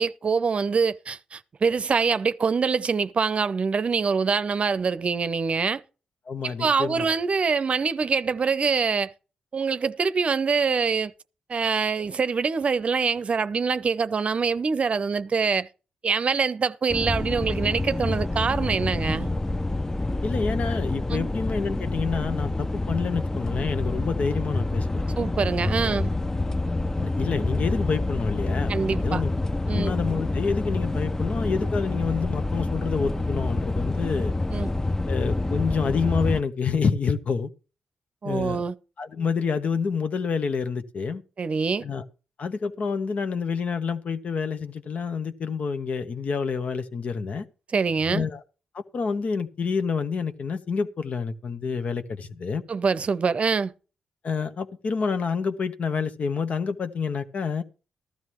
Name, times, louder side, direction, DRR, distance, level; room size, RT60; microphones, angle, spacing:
voice 1, 0.0-5.8 6.4-9.1 9.5-11.1 11.5-15.7 16.0-19.3 21.1-21.3 25.2-26.1 28.7-29.2 29.7-29.9 34.5-34.7 38.2-38.8 41.4-41.9 47.7-48.3 52.7-53.7, right 5 dB, 50° right, 0.6 m, -24 dB
voice 2, 6.3-7.1 20.2-25.0 25.8-26.0 26.8-29.3 29.7-34.3 35.1-37.5 38.2-38.6 39.0-41.2 41.8-42.0 42.4-47.4 48.1-48.4 48.7-52.6 54.2-57.6, left 5 dB, 60° left, 1.1 m, -28 dB
sound 1, 16.9-36.4, left 2 dB, 20° left, 0.6 m, -27 dB
14.5 x 12.5 x 3.1 m
supercardioid pair, 45°, 3 cm